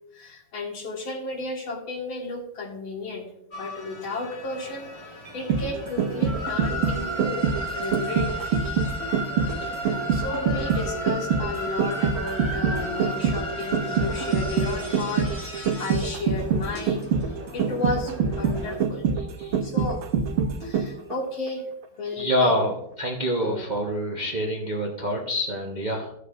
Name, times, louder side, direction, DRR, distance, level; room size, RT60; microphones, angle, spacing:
voice 1, 0.1-3.2 3.5-7.5 7.7-8.3 9.6-19.0 19.6-20.0 20.6-21.6 22.0-22.5 23.4-23.6, left 2 dB, 70° left, -1 dB, 2.5 m, -33 dB
sound 1, 3.5-18.8, equal, 30° left, 2.5 m, -35 dB
sound 2, 5.3-21.1 21.5-21.6, right 6 dB, 80° right, 1.6 m, -25 dB
voice 2, 22.2-26.1, equal, 35° right, -2 dB, 0.7 m, -26 dB
14.5 x 6.4 x 2.5 m, 0.77 s
omnidirectional pair, 2.3 m